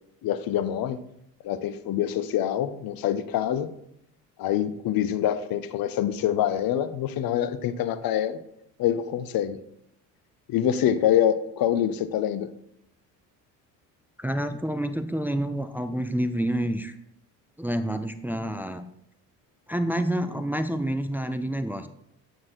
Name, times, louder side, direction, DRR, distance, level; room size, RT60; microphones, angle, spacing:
voice 1, 0.2-1.0 1.4-3.7 4.4-8.4 8.8-9.6 10.5-12.5, left 10 dB, 50° left, 14 dB, 0.8 m, -25 dB
voice 2, 14.2-16.9 17.6-18.8 19.7-21.9, right 1 dB, 5° right, 9 dB, 0.4 m, -28 dB
8.3 x 4.6 x 4.4 m, 0.75 s
hypercardioid pair, 65°, 46 cm